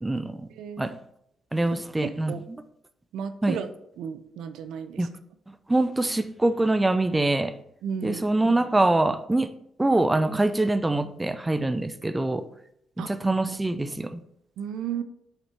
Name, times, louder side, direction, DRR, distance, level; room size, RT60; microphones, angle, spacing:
voice 1, 0.0-0.5 0.8-1.0 1.5-2.4 3.4-3.6 5.0-5.1 5.5-7.5 8.0-9.5 9.8-12.4 13.0-14.2, right 2 dB, 15° right, 12 dB, 0.5 m, -24 dB
voice 2, 0.5-0.9 2.0-2.4 3.1-3.7 4.0-5.1 7.8-8.2 13.0-13.1 14.6-15.0, right 7 dB, 85° right, 10 dB, 0.6 m, -33 dB
6.8 x 5.8 x 4.4 m, 0.75 s
cardioid pair, 90°, 0 cm